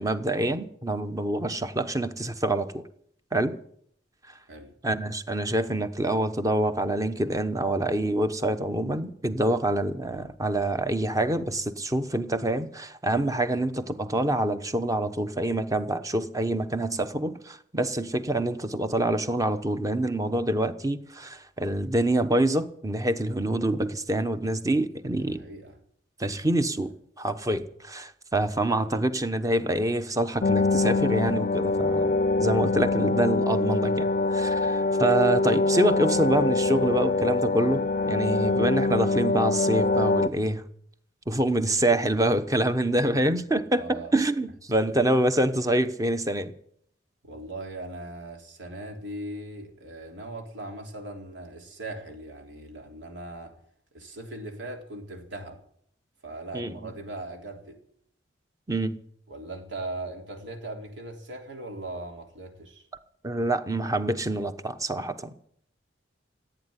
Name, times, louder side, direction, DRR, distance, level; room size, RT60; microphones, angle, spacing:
voice 1, 0.0-2.7 3.3-3.6 4.8-25.4 26.2-26.9 27.2-32.1 32.4-40.6 41.3-46.5 56.5-56.7 58.7-59.0 63.2-65.3, right 1 dB, 20° right, 1.0 m, -26 dB
voice 2, 25.2-25.8 26.3-26.9 28.3-28.5 43.8-44.1 47.2-53.5 53.9-55.6 56.2-57.8 59.3-62.9, right 2 dB, 80° right, 3.6 m, -39 dB
sound 1, 30.4-40.3, left 3 dB, 45° left, 0.5 m, -24 dB
15.5 x 9.1 x 9.7 m
head